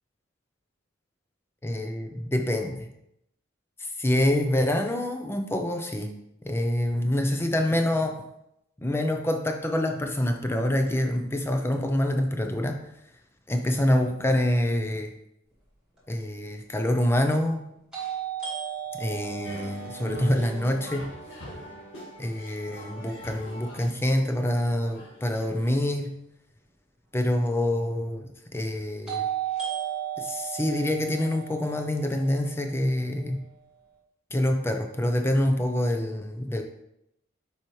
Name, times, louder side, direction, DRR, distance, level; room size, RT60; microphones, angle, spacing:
voice 1, 1.6-2.9 3.8-6.1 6.4-8.1 8.8-12.8 13.5-15.1 16.1-17.6 19.0-21.1 22.2-26.1 27.1-29.3 30.2-33.4 34.3-36.6, left 1 dB, 10° left, 4 dB, 0.6 m, -26 dB
sound 1, 16.0-16.1 17.9-21.8 29.1-33.1, right 10 dB, 5° right, 2.1 m, -35 dB
sound 2, 19.4-25.8, right 1 dB, 70° left, 1.9 m, -43 dB
7.2 x 4.9 x 3.1 m, 0.81 s
head